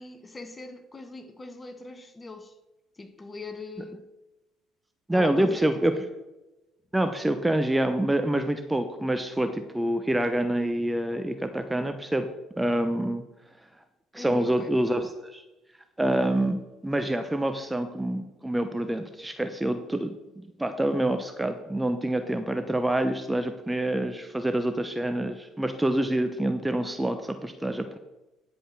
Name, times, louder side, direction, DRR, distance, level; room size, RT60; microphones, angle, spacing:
voice 1, 0.0-2.5 3.0-4.1 5.1-6.1 14.2-14.7, left 3 dB, 25° left, 1.3 m, -41 dB
voice 2, 5.1-5.9 6.9-12.3 12.6-13.2 14.1-15.4 16.0-28.0, right 1 dB, 10° right, 0.8 m, -27 dB
10.0 x 5.1 x 6.1 m
hypercardioid pair, 60°, 0 cm